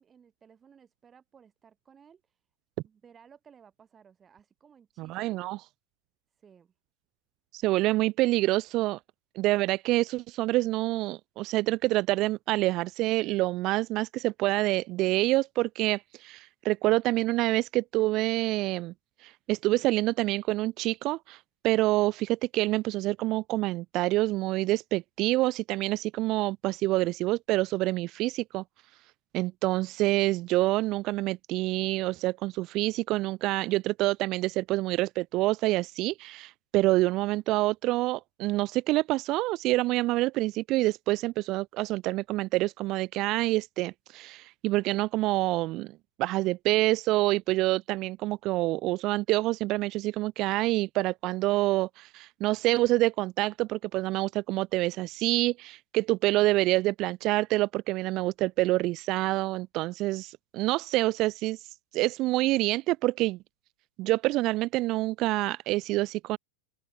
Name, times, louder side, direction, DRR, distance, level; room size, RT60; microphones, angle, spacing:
voice 1, 0.0-2.4 2.8-5.4 6.4-6.7, right 7 dB, 20° right, 4.5 m, -58 dB
voice 2, 5.0-5.6 7.5-9.0 9.4-18.9 19.2-21.4 21.6-28.6 29.3-61.6 61.9-63.4 64.0-66.4, right 19 dB, 40° right, 0.4 m, -27 dB
open air
figure-of-eight pair, 90°, 0 cm